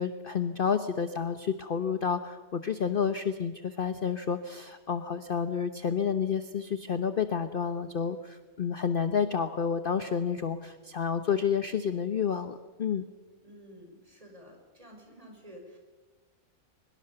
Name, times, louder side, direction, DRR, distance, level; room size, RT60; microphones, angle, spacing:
voice 1, 0.0-13.0, left 7 dB, 40° left, 9 dB, 1.0 m, -30 dB
voice 2, 13.4-15.8, equal, 25° right, 2 dB, 5.8 m, -51 dB
23.0 x 22.5 x 6.8 m, 1.3 s
omnidirectional pair, 1.6 m